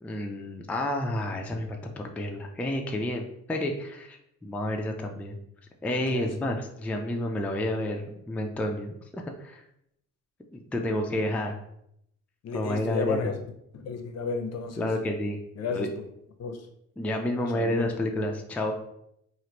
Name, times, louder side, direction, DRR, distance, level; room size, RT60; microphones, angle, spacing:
voice 1, 0.0-5.4 5.8-9.6 10.5-11.5 12.5-13.3 14.8-15.4 15.7-15.9 17.0-18.7, left 1 dB, 5° left, 2 dB, 0.3 m, -30 dB
voice 2, 12.4-13.3 13.7-14.9 15.6-15.9 16.4-16.7 17.5-17.9, left 5 dB, 55° left, 5 dB, 0.6 m, -32 dB
3.0 x 2.5 x 2.9 m, 0.75 s
cardioid pair, 90°, 30 cm